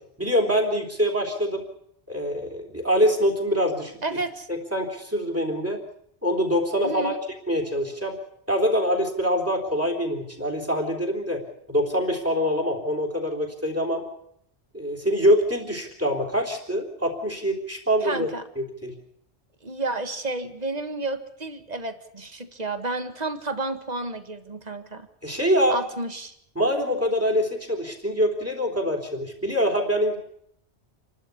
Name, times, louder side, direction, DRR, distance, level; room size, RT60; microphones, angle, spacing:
voice 1, 0.2-1.7 2.1-4.2 4.5-5.8 6.2-7.1 7.5-8.2 8.5-11.4 11.7-14.0 14.7-18.3 18.6-18.9 25.2-25.8 26.6-30.2, equal, 10° right, 4 dB, 3.6 m, -24 dB
voice 2, 4.0-4.5 6.8-7.2 18.0-18.4 19.6-25.1 25.7-26.3, right 2 dB, 40° right, 9 dB, 1.7 m, -31 dB
28.0 x 12.5 x 8.4 m, 0.72 s
omnidirectional pair, 1.1 m